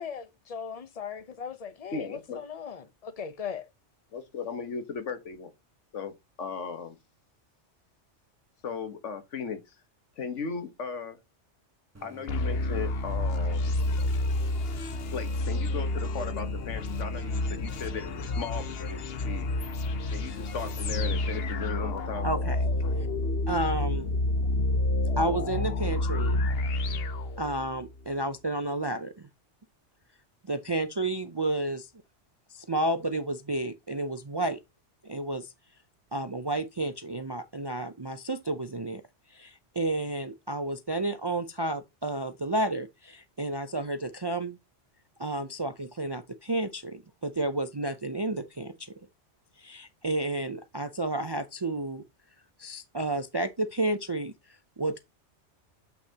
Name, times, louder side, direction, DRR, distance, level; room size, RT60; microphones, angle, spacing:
voice 1, 0.0-3.7, left 7 dB, 35° left, 0.8 m, -38 dB
voice 2, 1.9-2.4 4.1-5.5 5.9-7.0 8.6-9.8 10.2-11.2 12.0-13.8 15.1-19.5 20.1-22.3, left 5 dB, 85° left, 1.6 m, -37 dB
Idling, 11.9-21.5, equal, 15° right, 0.8 m, -49 dB
sound 1, 12.3-27.9, left 2 dB, 60° left, 1.0 m, -29 dB
voice 3, 22.2-22.7 23.5-24.1 25.2-26.5 27.4-29.3 30.4-31.9 32.5-34.6 35.0-35.5 36.1-39.0 39.3-44.6 45.2-48.9 49.6-52.0 52.6-55.0, right 2 dB, 35° right, 0.4 m, -31 dB
7.8 x 5.8 x 2.8 m
omnidirectional pair, 1.2 m